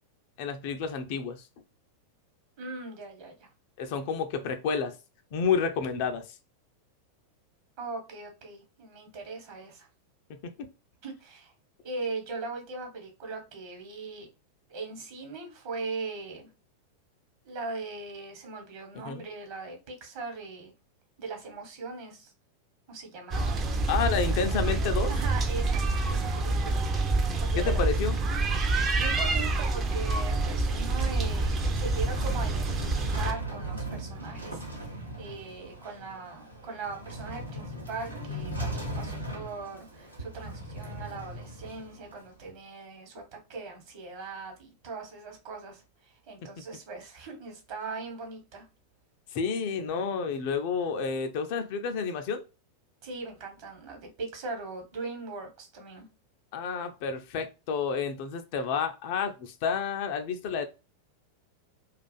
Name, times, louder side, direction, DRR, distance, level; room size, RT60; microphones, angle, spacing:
voice 1, 0.4-1.4 3.8-5.0 5.3-6.3 10.3-10.7 19.1-19.2 23.9-25.1 27.5-28.2 49.3-52.4 56.5-60.6, left 6 dB, 45° left, 0.3 m, -30 dB
voice 2, 2.6-3.5 7.8-9.9 11.0-11.5 11.8-14.3 14.7-16.5 17.4-20.7 21.2-22.3 22.9-23.6 25.1-26.8 27.4-27.8 29.0-34.7 35.2-48.7 53.0-56.0, right 4 dB, 45° right, 1.0 m, -40 dB
sound 1, 23.3-33.3, right 2 dB, 25° right, 0.4 m, -27 dB
sound 2, 30.7-42.5, right 1 dB, 90° right, 0.7 m, -38 dB
2.4 x 2.3 x 2.2 m
figure-of-eight pair, 90°, 0 cm